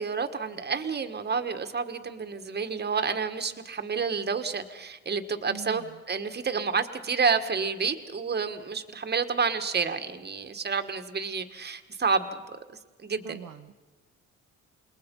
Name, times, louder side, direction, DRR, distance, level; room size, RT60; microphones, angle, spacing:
voice 1, 0.0-12.4 13.0-13.4, right 5 dB, 35° right, 9 dB, 1.7 m, -29 dB
voice 2, 5.4-6.0 13.2-13.7, right 7 dB, 80° right, 5 dB, 1.3 m, -43 dB
28.0 x 20.5 x 5.5 m, 1.2 s
cardioid pair, 90°, 30 cm